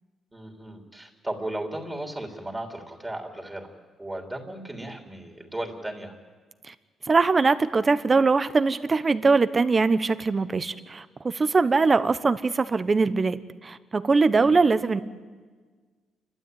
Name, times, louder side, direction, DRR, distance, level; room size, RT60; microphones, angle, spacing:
voice 1, 0.3-3.7 4.0-6.1 14.4-14.6, right 1 dB, 15° right, 2 dB, 3.4 m, -35 dB
voice 2, 7.1-15.0, right 4 dB, 30° right, 14 dB, 1.1 m, -22 dB
28.5 x 12.5 x 9.3 m, 1.5 s
cardioid pair, 90°, 0 cm